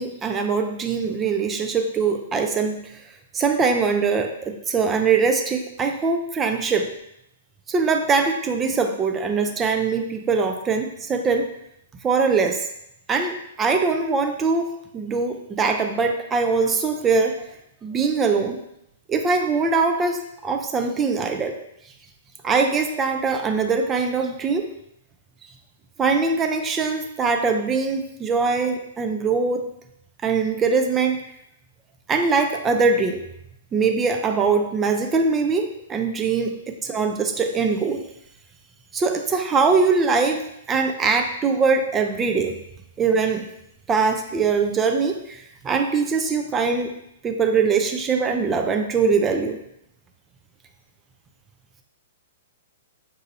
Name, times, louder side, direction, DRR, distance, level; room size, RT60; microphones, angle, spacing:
voice 1, 0.0-2.8 3.3-6.9 7.7-11.5 12.0-12.7 13.1-17.5 17.8-18.6 19.1-21.6 22.4-24.7 26.0-29.7 30.2-31.2 32.1-33.2 33.7-38.0 38.9-42.5 43.0-43.5 43.9-49.6, right 4 dB, 20° right, 5 dB, 0.4 m, -22 dB
4.1 x 2.6 x 2.6 m, 0.79 s
hypercardioid pair, 120°, 0 cm